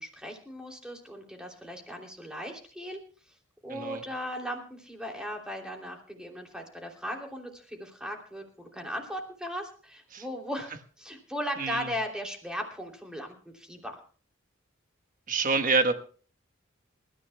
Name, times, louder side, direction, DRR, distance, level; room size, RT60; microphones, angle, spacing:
voice 1, 0.0-3.0 3.6-14.0, equal, 5° right, 1 dB, 3.0 m, -37 dB
voice 2, 3.7-4.0 10.1-10.2 11.6-11.8 15.3-15.9, right 4 dB, 45° right, 8 dB, 1.3 m, -26 dB
28.5 x 14.0 x 2.2 m, 0.42 s
head